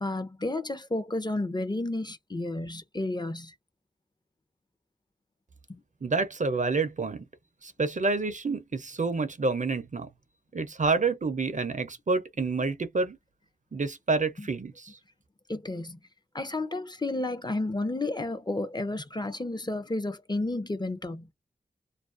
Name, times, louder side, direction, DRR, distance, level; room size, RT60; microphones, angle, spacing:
voice 1, 0.0-3.5 5.7-5.8 14.4-14.5 15.5-16.0 16.3-21.3, left 2 dB, 25° left, 0.5 m, -32 dB
voice 2, 6.0-7.2 7.6-10.1 10.5-13.2 13.7-15.0, right 3 dB, 45° right, 0.5 m, -28 dB
2.4 x 2.3 x 2.4 m
wide cardioid pair, 55°, 18 cm